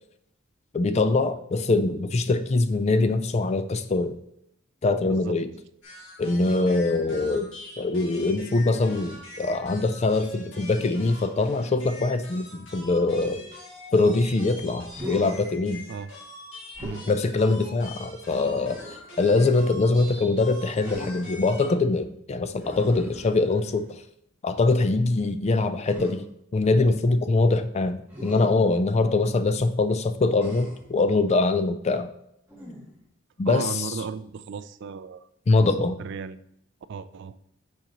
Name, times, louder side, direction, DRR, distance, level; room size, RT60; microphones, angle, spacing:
voice 1, 0.7-4.2 4.8-5.5 6.2-7.5 7.8-13.4 13.9-15.9 17.1-18.8 19.2-24.0 24.4-26.2 26.5-32.1 33.4-33.9 35.5-36.0, left 3 dB, 30° left, 11 dB, 0.3 m, -23 dB
voice 2, 5.0-5.4 6.5-6.7 15.9-16.1 16.8-17.0 33.5-35.3 36.0-36.4 36.9-37.3, right 5 dB, 60° right, 14 dB, 0.3 m, -35 dB
sound 1, 5.8-21.7, left 1 dB, 65° left, 2.6 m, -44 dB
Human voice, 14.9-15.5 16.7-17.1 18.4-19.1 20.8-21.5 22.6-23.8 25.9-26.1 28.1-28.4 30.4-30.9 32.5-33.0, equal, 10° right, 1.4 m, -40 dB
7.2 x 5.2 x 3.0 m, 0.75 s
head